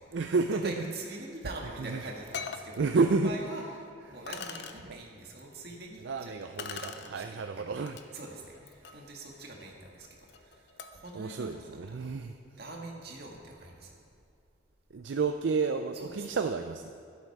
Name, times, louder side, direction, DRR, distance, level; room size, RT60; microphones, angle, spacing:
voice 1, 0.1-0.9 1.8-2.0 2.8-3.3 4.9-5.0 6.0-8.0 11.1-12.3 14.9-16.9, right 4 dB, 75° right, 7 dB, 0.5 m, -30 dB
voice 2, 0.6-3.6 4.1-7.7 8.1-12.1 12.6-14.0 15.9-16.3, right 2 dB, 55° right, 0 dB, 1.8 m, -44 dB
sound 1, 1.7-1.8 2.3-2.7 3.6-3.7 4.3-4.8 6.6-7.1 7.9-8.0 8.5-11.1, left 6 dB, 60° left, 0.7 m, -42 dB
12.0 x 11.5 x 4.7 m, 2.5 s
head